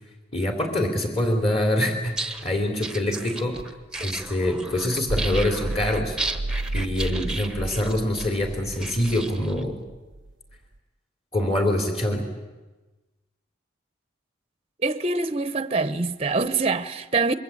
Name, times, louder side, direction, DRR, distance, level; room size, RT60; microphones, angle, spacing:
voice 1, 0.3-3.6 4.0-6.2 6.7-9.8 11.3-12.2, left 1 dB, 30° left, 3.3 m, -25 dB
sound 1, 2.0-9.6, right 2 dB, 5° right, 1.2 m, -34 dB
sound 2, 5.1-10.5, right 2 dB, 65° right, 0.8 m, -32 dB
voice 2, 14.8-17.3, right 3 dB, 30° right, 0.9 m, -24 dB
26.5 x 22.5 x 8.6 m
head